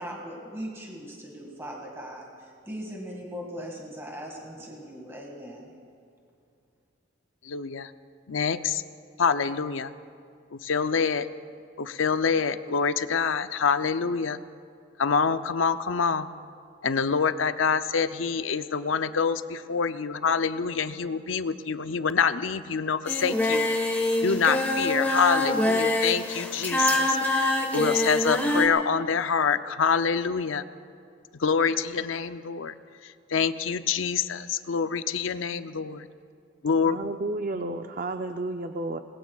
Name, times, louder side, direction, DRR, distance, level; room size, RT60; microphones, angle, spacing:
voice 1, 0.0-5.7, equal, 15° right, -1 dB, 2.0 m, -39 dB
voice 2, 7.4-7.9 8.3-8.8 9.2-9.9 10.5-11.3 11.8-14.4 15.0-16.3 16.8-23.7 24.2-30.6 31.4-32.7 33.0-36.1 36.6-37.1 37.5-37.8, left 6 dB, 90° left, 11 dB, 0.6 m, -26 dB
Singing, 23.1-28.7, left 1 dB, 10° left, 1.4 m, -25 dB
voice 3, 36.9-39.0, right 2 dB, 45° right, 6 dB, 0.5 m, -32 dB
27.5 x 20.5 x 2.4 m, 2.3 s
head